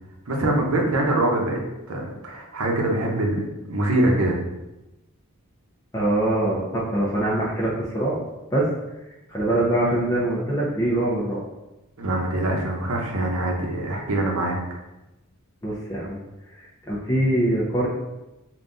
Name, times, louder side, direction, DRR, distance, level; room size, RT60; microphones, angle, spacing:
voice 1, 0.3-1.6 1.9-4.4 12.0-14.8, right 1 dB, 70° right, 0 dB, 0.8 m, -24 dB
voice 2, 5.9-8.2 8.5-8.7 9.3-11.4 15.6-16.2 16.6-17.9, right 1 dB, 15° left, -7 dB, 0.6 m, -23 dB
3.8 x 2.4 x 3.8 m, 0.98 s
head